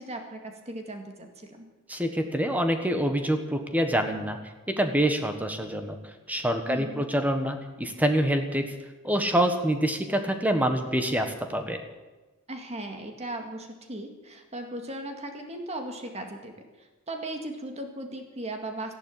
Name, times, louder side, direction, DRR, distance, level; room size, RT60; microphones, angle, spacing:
voice 1, 0.0-1.7 6.7-7.0 12.5-19.0, right 1 dB, 30° right, 4 dB, 2.1 m, -37 dB
voice 2, 1.9-4.4 4.7-6.0 6.3-8.6 9.0-11.8, right 1 dB, 5° right, 6 dB, 1.5 m, -26 dB
14.5 x 11.0 x 8.6 m, 1.2 s
head